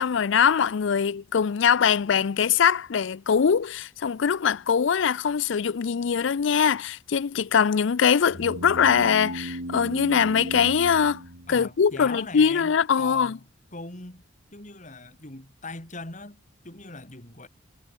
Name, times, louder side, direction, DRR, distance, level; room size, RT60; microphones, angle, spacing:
voice 1, 0.0-11.2 11.5-13.4, left 7 dB, 65° left, 0.4 m, -22 dB
sound 1, 8.3-12.0, right 1 dB, 85° right, 4.6 m, -36 dB
voice 2, 11.5-13.4 13.7-14.2 14.5-17.5, left 2 dB, 40° left, 3.5 m, -41 dB
head